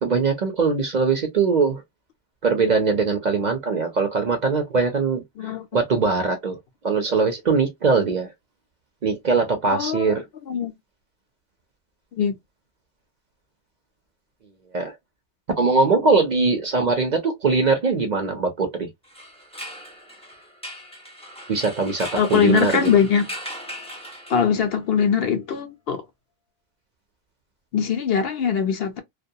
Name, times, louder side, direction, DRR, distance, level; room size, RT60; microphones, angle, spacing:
voice 1, 0.0-1.8 2.4-6.6 6.8-8.3 9.0-10.2 14.7-14.9 15.6-18.9 21.5-22.9, right 4 dB, 50° right, 0.6 m, -21 dB
voice 2, 9.7-10.1 10.5-10.7 12.2-12.4 22.2-23.2 24.3-26.0 27.7-29.0, left 7 dB, 65° left, 0.8 m, -21 dB
sound 1, 19.0-24.7, equal, 5° left, 0.5 m, -38 dB
2.2 x 2.2 x 2.6 m
omnidirectional pair, 1.1 m